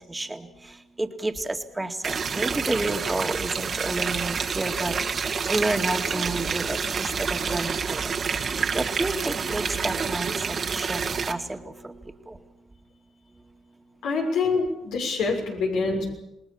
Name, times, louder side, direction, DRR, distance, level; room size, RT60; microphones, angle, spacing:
voice 1, 0.1-4.9 5.4-8.1 8.7-11.0 11.3-12.4, right 2 dB, 15° right, 5 dB, 2.2 m, -30 dB
sound 1, 2.0-11.3, right 5 dB, 45° right, 2.0 m, -28 dB
voice 2, 14.0-16.0, left 4 dB, 85° left, 0 dB, 6.3 m, -25 dB
28.0 x 19.5 x 7.2 m, 0.86 s
cardioid pair, 90°, 0 cm